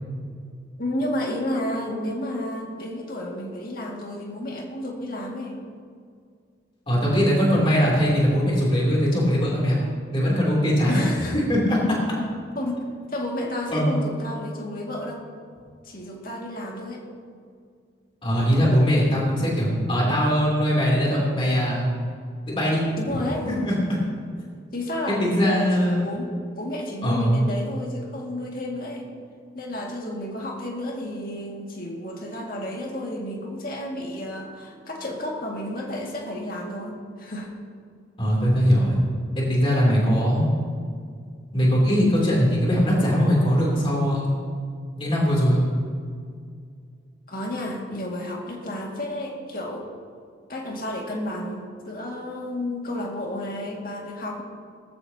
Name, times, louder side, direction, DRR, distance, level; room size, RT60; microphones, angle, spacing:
voice 1, 0.8-5.6 10.9-11.4 12.5-12.8 13.1-15.2 15.8-17.0 23.0-23.5 24.7-29.0 29.5-37.5 47.3-49.9 50.5-54.4, left 1 dB, 50° left, -1 dB, 2.1 m, -31 dB
voice 2, 6.9-9.8 10.1-11.0 11.3-12.0 13.7-13.9 18.2-21.8 22.5-22.8 23.4-24.0 25.2-26.0 27.0-27.4 38.2-39.0 39.4-40.5 41.5-44.3 45.0-45.6, equal, 25° left, -4 dB, 3.1 m, -21 dB
19.0 x 14.0 x 2.9 m, 2.2 s
head